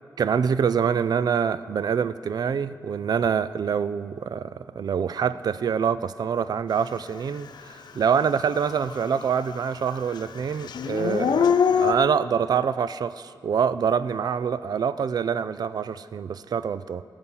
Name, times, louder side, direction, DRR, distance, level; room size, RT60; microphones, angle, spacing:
voice 1, 0.2-17.0, right 7 dB, 65° right, 0.4 m, -25 dB
Dog / Siren, 7.6-7.7 8.1-9.6 9.8-11.9, left 7 dB, 85° left, 0.5 m, -24 dB
19.0 x 7.0 x 5.6 m
wide cardioid pair, 125°, 7 cm